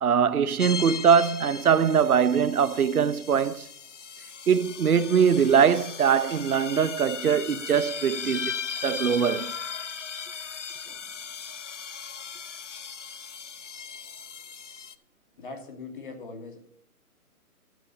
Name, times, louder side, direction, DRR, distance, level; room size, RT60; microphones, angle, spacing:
voice 1, 0.0-3.7 4.5-8.6 8.8-9.5, right 7 dB, 70° right, 0.9 m, -22 dB
sound 1, 0.6-14.9, left 6 dB, 55° left, 0.8 m, -37 dB
voice 2, 15.4-16.6, left 3 dB, 35° left, 2.3 m, -40 dB
12.0 x 6.3 x 6.6 m
hypercardioid pair, 170°, 45 cm